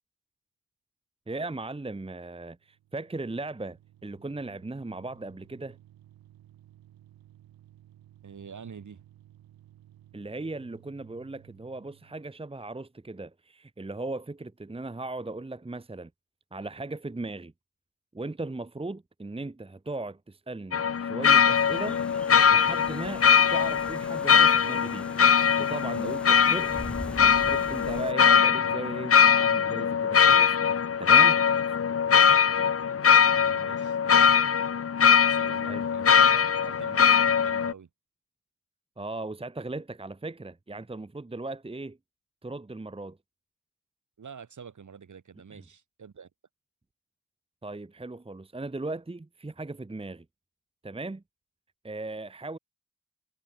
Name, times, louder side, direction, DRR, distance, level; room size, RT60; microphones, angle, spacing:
voice 1, 1.3-5.8 10.1-16.1 16.5-17.5 18.1-22.0 22.5-25.1 25.6-26.7 27.2-30.6 31.0-31.4 35.7-35.8 39.0-42.0 42.4-43.2 45.5-45.6 47.6-50.2 50.8-51.2 51.8-52.6, right 2 dB, 15° right, 1.3 m, -37 dB
sound 1, 2.6-12.4, right 13 dB, 85° right, 5.0 m, -56 dB
voice 2, 8.2-9.0 33.1-34.4 35.0-37.9 44.2-46.3, right 6 dB, 55° right, 4.7 m, -45 dB
sound 2, 20.7-37.7, left 7 dB, 40° left, 1.0 m, -21 dB
sound 3, 21.4-28.1, equal, 5° left, 2.8 m, -43 dB
supercardioid pair, 45°, 35 cm